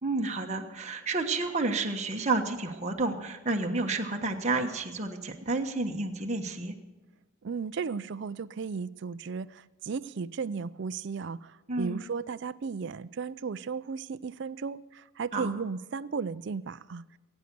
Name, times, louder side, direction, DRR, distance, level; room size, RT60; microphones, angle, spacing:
voice 1, 0.0-6.7 11.7-12.0 15.3-15.5, right 3 dB, 30° right, 2 dB, 1.2 m, -30 dB
voice 2, 7.4-17.0, right 5 dB, 55° right, 15 dB, 0.4 m, -35 dB
21.0 x 9.1 x 6.8 m, 1.1 s
head